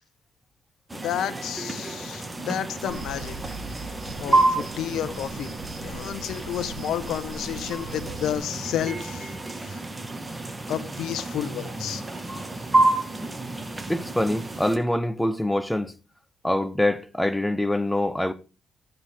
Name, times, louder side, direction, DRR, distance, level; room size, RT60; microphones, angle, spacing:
voice 1, 0.9-3.4 4.2-5.5 5.8-9.4 9.6-9.8 10.7-12.0, left 10 dB, 80° left, 1.1 m, -31 dB
sound 1, 0.9-14.8, right 2 dB, 15° right, 1.5 m, -29 dB
sound 2, 2.9-8.4, right 3 dB, 40° right, 3.1 m, -40 dB
voice 2, 13.9-15.9 16.4-18.3, left 1 dB, 5° left, 0.8 m, -24 dB
13.0 x 8.2 x 3.6 m
cardioid pair, 90°, 0 cm